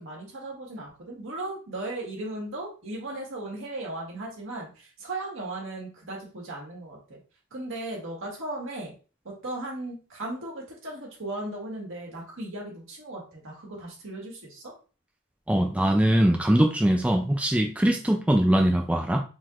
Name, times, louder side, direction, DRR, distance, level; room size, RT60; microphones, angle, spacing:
voice 1, 0.0-7.2 7.5-8.9 9.2-14.7, right 2 dB, 60° right, -2 dB, 1.8 m, -37 dB
voice 2, 15.5-19.2, right 1 dB, 5° right, 2 dB, 0.4 m, -22 dB
4.5 x 3.8 x 2.5 m, 0.36 s
head